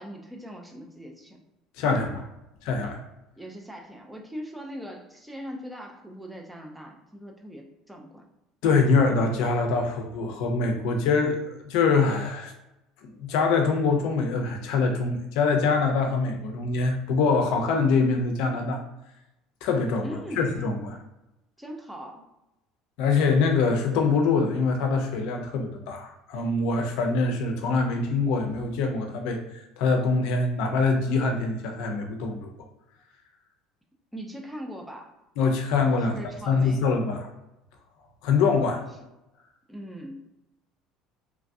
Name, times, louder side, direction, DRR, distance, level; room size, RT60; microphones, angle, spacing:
voice 1, 0.0-1.4 3.4-8.2 20.0-20.6 21.6-22.2 34.1-35.1 36.1-36.8 39.7-40.2, equal, 5° right, 2 dB, 0.3 m, -40 dB
voice 2, 1.8-2.2 2.6-3.0 8.6-11.4 11.7-12.5 13.0-18.8 19.6-20.1 20.4-21.0 23.0-32.5 35.4-36.2 36.5-37.3 38.2-38.8, left 4 dB, 70° left, 4 dB, 0.5 m, -24 dB
3.0 x 2.3 x 2.6 m, 0.93 s
cardioid pair, 155°, 0 cm